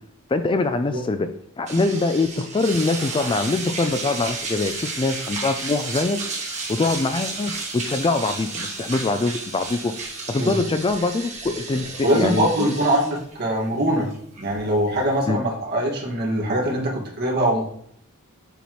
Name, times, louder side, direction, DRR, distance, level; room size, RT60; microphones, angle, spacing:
voice 1, 0.3-1.3 1.6-6.2 6.7-9.9 10.3-12.7 15.3-15.4, left 3 dB, 20° left, 9 dB, 0.3 m, -23 dB
sound 1, 1.7-15.2, right 3 dB, 30° right, 1.5 m, -32 dB
voice 2, 12.0-13.0 13.4-14.1 14.4-17.7, right 1 dB, 45° right, -3 dB, 1.9 m, -22 dB
7.0 x 5.7 x 3.1 m, 0.68 s
head